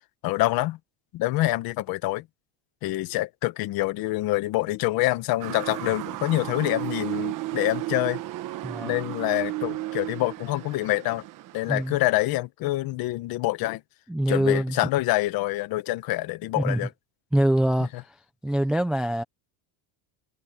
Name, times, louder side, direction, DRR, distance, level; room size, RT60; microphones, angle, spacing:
voice 1, 0.2-0.8 1.1-2.2 2.8-8.2 8.8-11.2 11.5-13.8 14.3-16.9, left 17 dB, 45° left, 1.0 m, -26 dB
Motor vehicle (road) / Siren, 5.4-12.2, right 17 dB, 40° right, 1.1 m, -34 dB
voice 2, 8.6-8.9 11.7-12.0 14.1-14.8 16.6-16.9 17.3-18.2 18.4-19.2, right 1 dB, ahead, 0.4 m, -24 dB
cardioid pair, 175°, 50 cm